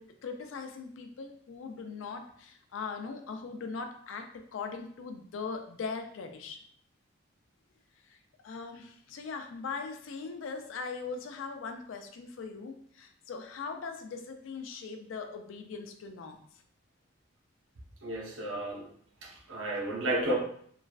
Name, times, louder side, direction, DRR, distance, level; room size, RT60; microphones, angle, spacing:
voice 1, 0.0-6.6 8.1-8.2 8.4-16.4, left 4 dB, 75° left, 6 dB, 0.4 m, -40 dB
voice 2, 18.0-18.9 19.2-20.3, right 1 dB, 75° right, -1 dB, 0.7 m, -32 dB
3.1 x 2.4 x 2.3 m, 0.62 s
head